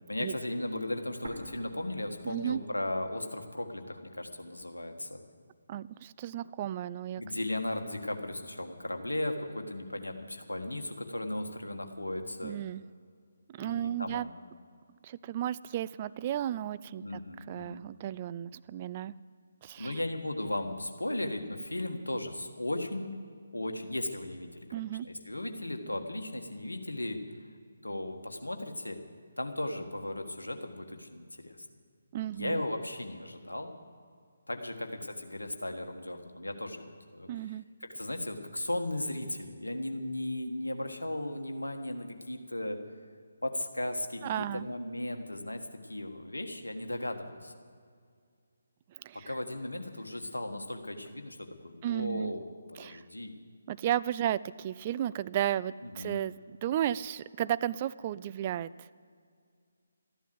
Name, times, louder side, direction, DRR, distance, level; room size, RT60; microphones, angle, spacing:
voice 1, 0.1-5.2 7.2-12.6 13.6-14.3 17.0-17.8 19.8-23.2 23.5-24.7 25.0-27.2 27.8-29.0 29.4-31.6 32.3-33.7 34.5-37.3 37.8-42.8 43.4-47.5 49.1-53.3 55.8-56.2, left 1 dB, 75° left, 5 dB, 1.5 m, -36 dB
sound 1, 1.2-3.2 3.5-3.6 4.3-5.2, right 1 dB, 70° right, 2.0 m, -48 dB
voice 2, 2.2-2.6 5.7-7.2 12.4-12.8 13.5-14.3 15.0-17.2 17.5-19.1 19.6-20.0 24.7-25.1 32.1-32.6 37.3-37.6 44.2-44.7 48.9-49.4 51.8-52.3 52.8-53.0 53.7-58.9, right 11 dB, 30° right, 16 dB, 0.3 m, -34 dB
13.5 x 11.0 x 7.7 m, 2.1 s
figure-of-eight pair, 145°, 0 cm